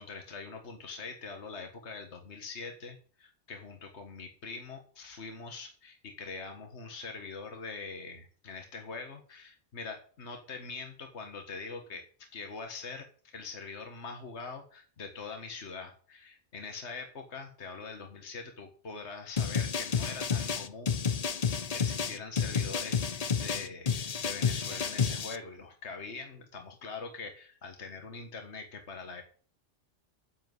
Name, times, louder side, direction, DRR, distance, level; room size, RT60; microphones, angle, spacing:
voice 1, 0.0-13.1 13.3-21.0 21.7-29.2, left 4 dB, 65° left, 4 dB, 1.9 m, -43 dB
sound 1, 19.4-25.4, left 6 dB, 40° left, 0.7 m, -30 dB
10.0 x 7.9 x 8.0 m, 0.43 s
omnidirectional pair, 1.2 m